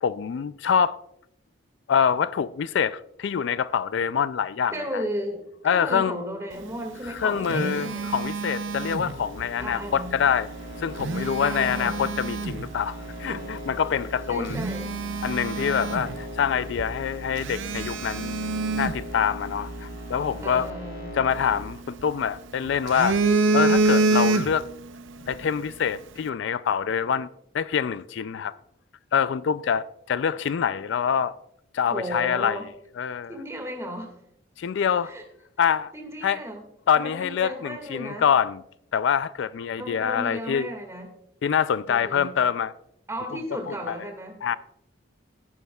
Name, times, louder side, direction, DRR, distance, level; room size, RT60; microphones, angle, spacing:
voice 1, 0.0-1.0 1.9-4.7 5.6-6.2 7.0-10.5 10.8-14.6 15.2-18.4 18.7-20.7 21.1-23.2 23.5-24.7 25.3-27.3 27.5-28.5 29.1-31.3 31.7-32.6 33.0-33.3 34.6-35.1 35.6-35.9 36.2-36.4 36.9-38.6 38.9-40.7 41.4-42.7 43.7-43.9 44.4-44.6, left 7 dB, 65° left, 0.3 m, -25 dB
voice 2, 4.7-5.4 5.7-8.1 9.6-10.2 11.4-12.1 14.3-14.9 20.4-21.1 31.9-32.6 33.3-34.2 35.0-35.2 35.9-36.6 37.0-38.3 39.8-41.1 41.9-42.4 43.1-44.3, equal, 15° right, 1.9 m, -34 dB
Telephone, 7.0-9.5 10.8-12.7 13.3-13.5 14.0-14.1 14.5-16.5 16.8-16.9 17.4-19.8 21.3-22.3 22.7-24.8 25.1-25.4, right 3 dB, 75° right, 0.6 m, -26 dB
sound 1, 8.2-21.6, equal, 80° left, 2.3 m, -39 dB
14.5 x 11.0 x 2.3 m
head